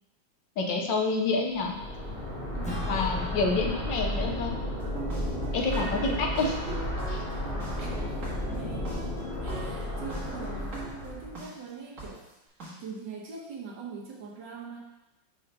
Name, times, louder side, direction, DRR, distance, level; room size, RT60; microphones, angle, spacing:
voice 1, 0.6-1.7 2.9-4.5 5.5-6.8 7.1-7.2, left 3 dB, 80° left, 2 dB, 1.6 m, -28 dB
sound 1, 1.5-11.4, left 1 dB, 30° left, 2.2 m, -33 dB
voice 2, 2.5-3.0 7.8-7.9 8.5-9.1 9.4-10.8 11.0-12.2 12.8-14.8, right 5 dB, 80° right, -1 dB, 1.7 m, -42 dB
Acoustic guitar / Strum, 2.6-7.4, left 1 dB, 5° left, 0.9 m, -45 dB
sound 2, 4.8-11.5 12.0-12.1 12.6-12.7, right 3 dB, 45° right, 2.0 m, -40 dB
5.5 x 4.1 x 5.4 m, 1.0 s
omnidirectional pair, 2.0 m